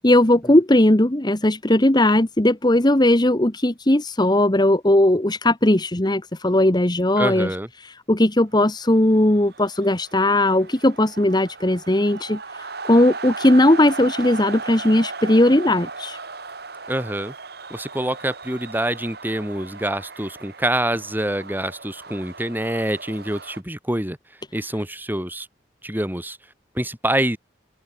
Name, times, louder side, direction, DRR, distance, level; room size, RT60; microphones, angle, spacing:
voice 1, 0.0-7.5 7.8-16.2, left 1 dB, 25° left, 1.4 m, -18 dB
voice 2, 7.2-7.7 16.9-17.3 17.7-24.2 24.5-25.5 25.8-26.4 26.8-27.4, right 1 dB, 10° right, 7.4 m, -26 dB
sound 1, 8.8-23.6, right 4 dB, 60° right, 4.0 m, -37 dB
open air
head